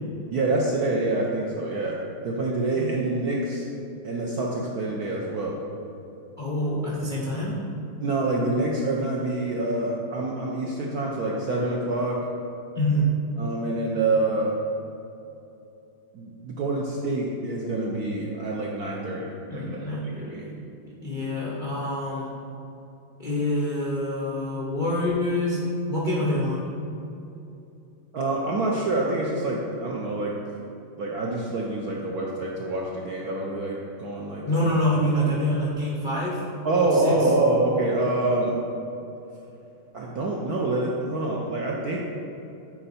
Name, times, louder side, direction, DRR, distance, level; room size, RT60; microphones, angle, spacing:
voice 1, 0.3-3.6 4.0-5.6 8.0-12.2 13.4-14.5 16.1-19.8 20.0-20.4 28.1-30.4 31.0-34.7 36.6-38.6 39.9-42.0, right 2 dB, 75° right, -2 dB, 0.9 m, -26 dB
voice 2, 6.4-7.6 12.7-13.2 19.5-22.4 23.2-26.8 34.5-36.4 36.8-37.3, equal, 90° left, -5 dB, 0.4 m, -26 dB
9.0 x 4.4 x 4.2 m, 2.8 s
omnidirectional pair, 2.4 m